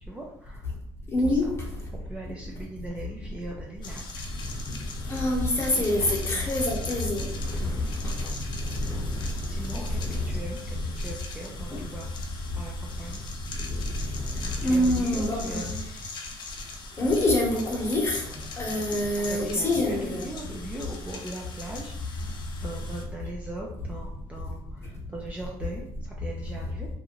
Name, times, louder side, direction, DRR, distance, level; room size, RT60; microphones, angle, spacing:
voice 1, 0.0-0.7 1.2-1.5 1.9-4.0 5.9-6.5 7.6-7.8 9.5-13.2 14.6-16.1 18.9-26.9, right 1 dB, 10° right, -2 dB, 0.4 m, -40 dB
voice 2, 1.1-1.5 4.7-4.8 5.1-9.3 9.7-10.4 11.7-11.8 13.7-15.8 17.0-18.2 18.6-20.2, left 1 dB, 25° left, -2 dB, 1.0 m, -26 dB
sound 1, 3.8-23.0, left 4 dB, 45° left, 0.5 m, -42 dB
2.5 x 2.4 x 3.0 m, 0.72 s
cardioid pair, 110°, 11 cm